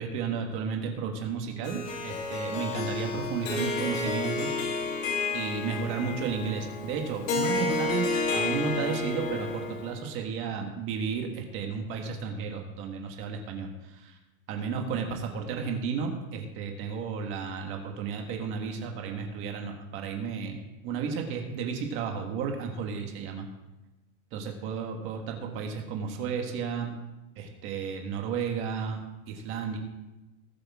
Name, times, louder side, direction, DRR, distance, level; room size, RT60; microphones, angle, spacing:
voice 1, 0.0-5.0 5.3-14.2 14.5-20.6 20.8-23.5 24.3-26.9 27.3-29.0 29.3-29.8, right 6 dB, 30° right, 2 dB, 1.7 m, -33 dB
Harp, 1.6-10.1, left 3 dB, 70° left, 2.4 m, -31 dB
19.0 x 7.9 x 3.6 m, 1.0 s
supercardioid pair, 165°, 41 cm